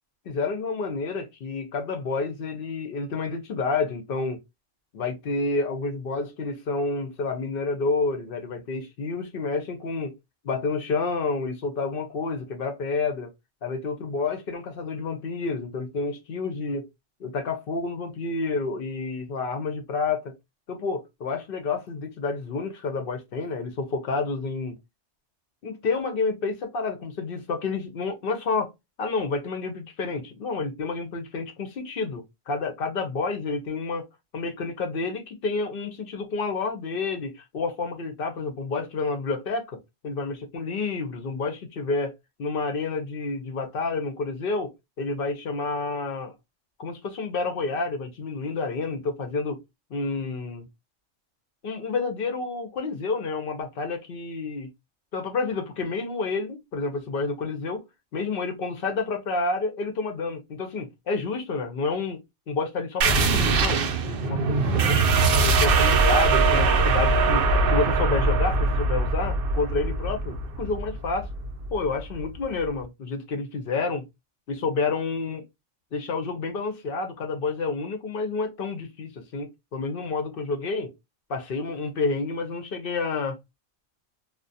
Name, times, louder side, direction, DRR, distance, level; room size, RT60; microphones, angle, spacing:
voice 1, 0.3-4.4 4.9-10.1 10.4-13.3 13.6-16.9 17.2-20.3 20.7-24.7 25.6-28.7 29.0-34.1 34.3-44.7 45.0-46.3 46.8-49.6 49.9-50.7 51.6-54.7 55.1-57.8 58.1-62.2 62.5-65.0 65.3-71.3 71.7-74.0 74.5-75.4 75.9-80.9 81.3-83.4, left 4 dB, 60° left, 0.6 m, -29 dB
sound 1, 63.0-72.2, right 3 dB, 60° right, 0.6 m, -22 dB
2.3 x 2.1 x 2.5 m
omnidirectional pair, 1.3 m